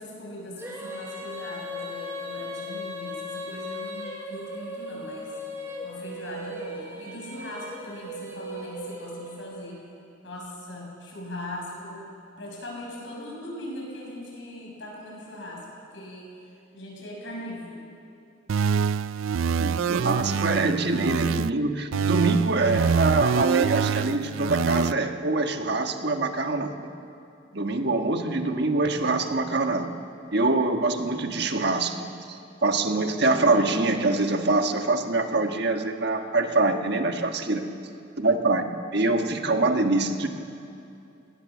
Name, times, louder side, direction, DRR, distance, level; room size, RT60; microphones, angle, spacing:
voice 1, 0.0-5.3 5.8-9.8 10.2-12.1 12.4-16.3 16.7-17.8, left 1 dB, 65° left, -2 dB, 6.8 m, -39 dB
Female singing, 0.6-9.7, left 1 dB, 15° right, 3.1 m, -37 dB
sound 1, 18.5-21.5 21.9-24.9, right 6 dB, 85° right, 0.4 m, -25 dB
voice 2, 19.6-26.9 27.5-29.9 30.3-37.6 38.2-38.7 38.9-40.3, right 2 dB, 55° right, 5 dB, 1.4 m, -24 dB
19.0 x 19.0 x 7.3 m, 2.6 s
head